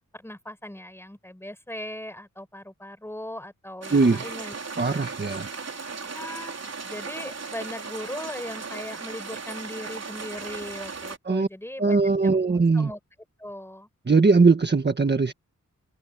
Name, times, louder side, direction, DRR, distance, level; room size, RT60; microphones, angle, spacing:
voice 1, 0.1-5.1 6.0-6.6 6.8-13.0 13.4-13.9, left 1 dB, 10° left, 6.0 m, -39 dB
sound 1, 3.8-11.2, right 4 dB, 55° right, 4.1 m, -37 dB
voice 2, 3.9-4.3 4.8-5.5 11.2-11.5 11.8-12.9 14.1-15.3, right 4 dB, 35° right, 1.5 m, -20 dB
wide cardioid pair, 140°, 31 cm